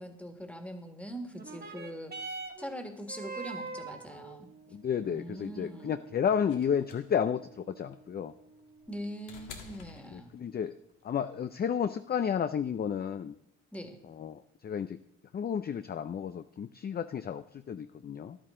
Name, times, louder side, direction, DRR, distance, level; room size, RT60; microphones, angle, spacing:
voice 1, 0.0-4.5 5.0-6.0 8.9-10.3 13.7-14.0, equal, 5° left, 5 dB, 1.8 m, -42 dB
sound 1, 1.3-10.3 11.1-11.2, right 3 dB, 30° right, 1.8 m, -46 dB
voice 2, 4.7-8.3 10.1-10.7 11.0-13.4 14.0-15.0 15.3-18.4, left 8 dB, 30° left, 11 dB, 0.4 m, -32 dB
sound 2, 6.5-10.8 12.0-12.1, left 6 dB, 90° left, 1.6 m, -50 dB
13.5 x 11.0 x 3.8 m, 0.78 s
cardioid pair, 90°, 30 cm